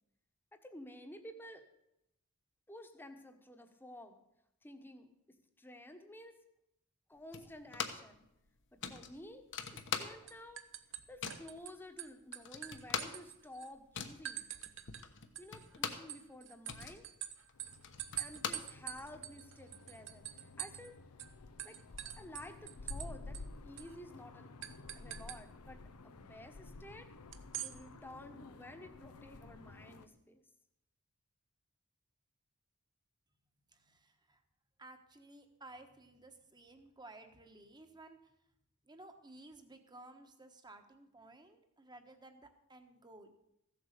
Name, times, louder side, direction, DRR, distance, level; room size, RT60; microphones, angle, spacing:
voice 1, 0.5-1.6 2.7-4.2 4.6-5.1 5.6-6.4 7.1-8.2 8.7-10.6 11.1-14.5 15.4-17.0 18.2-21.0 21.6-21.8 22.2-24.5 24.9-27.1 27.6-30.4, left 1 dB, 10° left, 6 dB, 1.2 m, -52 dB
sound 1, 7.3-8.2 8.4-8.5 8.8-10.5 10.8-11.5 12.0-12.1 12.3-16.1 16.5-19.2, left 7 dB, 55° left, 1.2 m, -42 dB
sound 2, 9.7-10.0 10.3-11.7 12.0-13.7 14.3-15.1 15.4-20.9 21.2-21.3 21.6-23.1 23.3-23.4 23.8-23.9 24.6-25.4 27.3-27.7, right 13 dB, 60° right, 0.8 m, -45 dB
sound 3, 17.5-30.1, left 3 dB, 85° left, 0.8 m, -52 dB
voice 2, 33.7-34.4 34.8-38.4 38.8-43.3, right 2 dB, 20° right, 7 dB, 1.3 m, -56 dB
15.0 x 8.0 x 6.7 m, 0.82 s
head